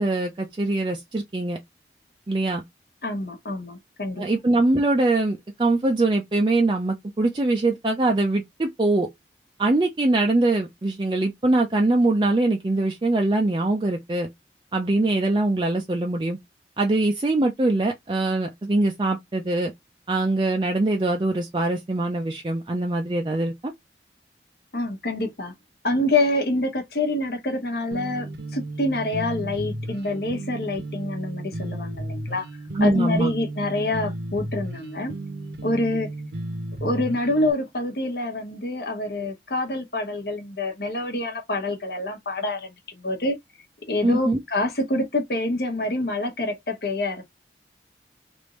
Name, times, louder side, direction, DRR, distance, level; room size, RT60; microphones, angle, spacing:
voice 1, 0.0-1.6 2.3-2.6 4.2-9.1 9.6-14.3 14.7-16.4 16.8-19.7 20.1-23.7 32.7-33.3 44.0-44.4, right 2 dB, 25° right, 0.4 m, -23 dB
voice 2, 3.0-4.2 24.7-25.5 25.8-32.5 32.8-35.1 35.6-36.1 36.8-43.4 43.9-47.2, left 2 dB, 60° left, 1.1 m, -26 dB
sound 1, 27.9-37.5, right 1 dB, 70° right, 0.8 m, -34 dB
3.3 x 2.6 x 3.0 m
head